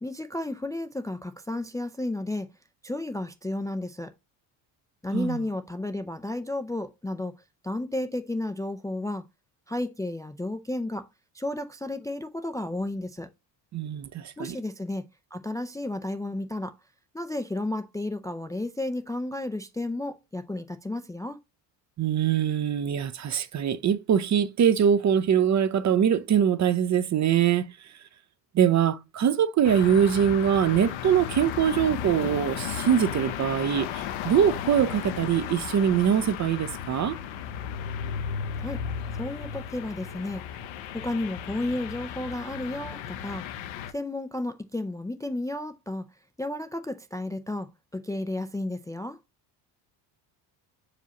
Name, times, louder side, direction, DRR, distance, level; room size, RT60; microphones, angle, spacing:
voice 1, 0.0-2.5 2.8-4.1 5.0-7.3 7.6-9.2 9.7-11.1 11.3-13.3 14.4-15.0 15.3-16.8 17.1-21.4 38.6-38.8 39.1-40.4 40.9-43.4 43.9-46.0 46.4-49.2, left 1 dB, 10° left, 0.4 m, -32 dB
voice 2, 13.7-14.6 22.0-27.7 28.5-37.2, right 8 dB, 40° right, 0.6 m, -23 dB
sound 1, 29.6-43.9, left 9 dB, 75° left, 0.8 m, -35 dB
6.8 x 5.0 x 2.9 m
cardioid pair, 105°, 46 cm